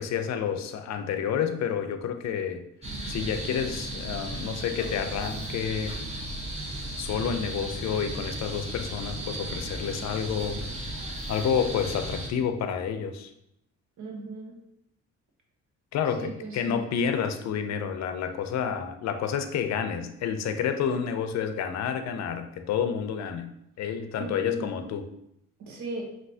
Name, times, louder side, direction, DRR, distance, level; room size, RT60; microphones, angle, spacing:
voice 1, 0.0-2.6 3.1-6.0 7.0-10.6 11.3-13.3 15.9-23.5 23.8-25.1, left 7 dB, 60° left, 8 dB, 0.5 m, -29 dB
sound 1, 2.8-12.3, right 1 dB, 20° right, 1.2 m, -35 dB
voice 2, 14.0-14.5 16.2-16.8 24.2-24.7 25.6-26.1, right 2 dB, 75° right, 0 dB, 1.1 m, -37 dB
5.3 x 2.8 x 2.7 m, 0.79 s
cardioid pair, 90°, 30 cm